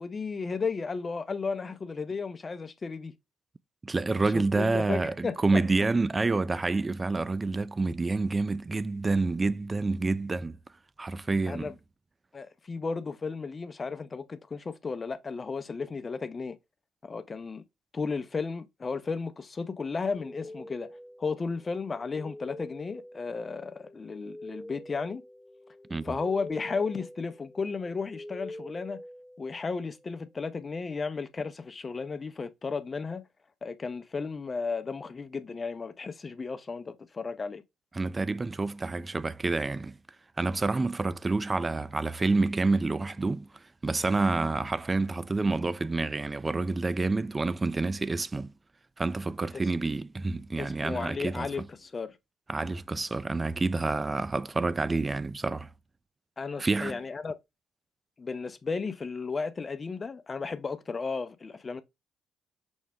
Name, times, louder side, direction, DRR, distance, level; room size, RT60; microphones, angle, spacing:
voice 1, 0.0-3.1 4.2-5.6 11.5-11.7 12.3-16.6 17.0-17.6 17.9-20.9 21.2-25.2 26.0-29.0 29.4-33.2 33.6-37.6 49.5-49.6 50.6-52.2 56.4-57.4 58.2-61.8, left 4 dB, 40° left, 0.7 m, -34 dB
voice 2, 3.8-10.6 11.0-11.7 25.9-26.1 38.0-40.0 40.4-48.5 49.0-51.7 52.5-55.7 56.6-57.0, right 3 dB, 30° right, 0.4 m, -28 dB
sound 1, 20.1-29.8, left 1 dB, 10° left, 0.9 m, -46 dB
6.2 x 2.1 x 3.4 m
hypercardioid pair, 50°, 0 cm